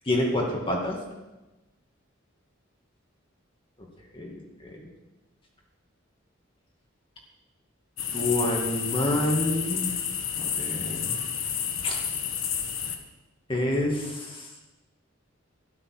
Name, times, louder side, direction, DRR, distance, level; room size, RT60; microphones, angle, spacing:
voice 1, 0.1-1.0 4.1-4.9 8.1-10.0 10.4-11.3 11.8-12.0 13.5-14.5, left 1 dB, 25° left, -1 dB, 2.2 m, -28 dB
sound 1, 8.0-13.0, left 8 dB, 65° left, 1.4 m, -30 dB
12.5 x 11.0 x 6.3 m, 1.1 s
head